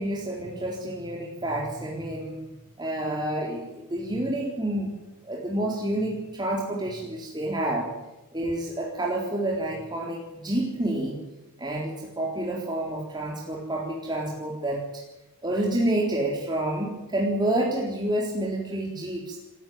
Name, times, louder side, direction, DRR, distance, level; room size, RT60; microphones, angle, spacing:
voice 1, 0.0-4.9 5.2-7.9 8.3-11.2 11.6-15.0 15.4-19.4, right 1 dB, 20° right, -2 dB, 3.8 m, -29 dB
29.0 x 16.0 x 9.3 m, 0.97 s
head